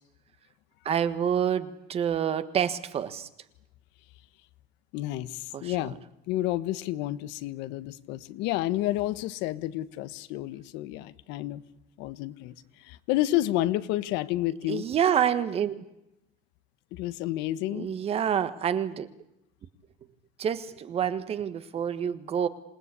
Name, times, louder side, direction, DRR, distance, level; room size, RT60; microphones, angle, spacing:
voice 1, 0.8-3.3 5.5-5.7 14.7-15.8 17.7-19.1 20.4-22.5, right 8 dB, 30° right, 12 dB, 1.5 m, -27 dB
voice 2, 4.9-6.0 6.3-11.6 12.0-14.8 16.9-17.9, left 15 dB, 65° left, 14 dB, 1.4 m, -30 dB
27.5 x 19.5 x 8.5 m, 0.85 s
cardioid pair, 155°, 19 cm